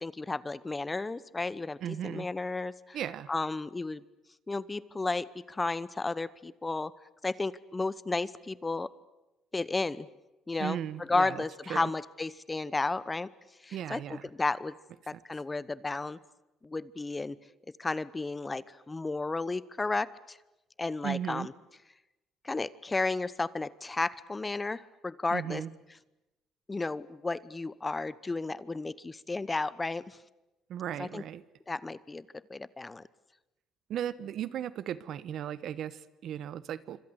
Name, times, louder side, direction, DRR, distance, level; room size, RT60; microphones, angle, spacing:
voice 1, 0.0-3.0 3.3-4.0 4.5-6.9 7.2-8.9 9.5-10.1 10.5-13.3 13.6-14.7 15.1-16.2 16.6-17.4 17.8-20.4 20.8-21.5 22.4-25.6 26.7-30.2 31.0-31.2 31.7-32.2 32.5-33.0, left 3 dB, 20° left, 19 dB, 0.9 m, -33 dB
voice 2, 1.8-2.3 2.9-3.3 10.6-11.4 11.7-11.9 13.7-14.3 21.0-21.5 25.3-25.7 30.7-31.4 33.9-37.0, right 10 dB, 65° right, 17 dB, 1.2 m, -36 dB
26.5 x 25.5 x 8.1 m, 0.98 s
cardioid pair, 110°, 0 cm